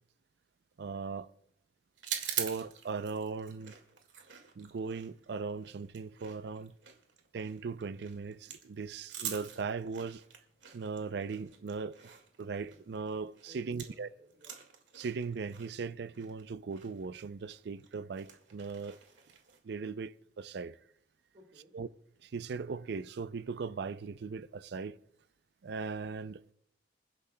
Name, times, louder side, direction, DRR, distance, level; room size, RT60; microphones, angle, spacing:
voice 1, 0.8-1.3 2.2-3.7 4.6-6.7 7.3-10.2 10.7-14.1 14.9-19.0 19.6-20.8 21.7-21.9 22.2-25.0 25.6-26.4, right 5 dB, 65° right, 0.4 m, -39 dB
sound 1, 2.0-14.1 14.3-19.6, right 9 dB, 90° right, 1.8 m, -44 dB
voice 2, 13.4-14.6 18.7-18.9 21.3-21.8, equal, 40° right, 1.7 m, -60 dB
28.0 x 10.5 x 2.2 m
head